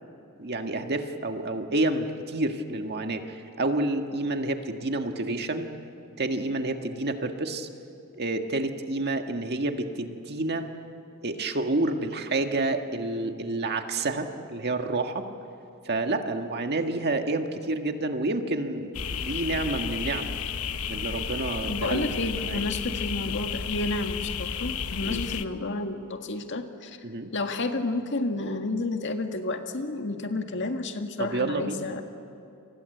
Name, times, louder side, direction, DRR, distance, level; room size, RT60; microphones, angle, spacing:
voice 1, 0.4-5.7 6.2-7.7 8.1-10.7 11.2-15.3 15.9-20.3 20.9-22.7 25.1-25.2 27.0-27.3 31.2-31.9, right 2 dB, 50° right, 5 dB, 1.8 m, -29 dB
sound 1, 18.9-25.5, left 7 dB, 75° left, 1.0 m, -32 dB
voice 2, 21.7-27.0 27.3-32.0, left 2 dB, 55° left, 5 dB, 1.9 m, -31 dB
29.5 x 24.5 x 8.0 m, 2.7 s
head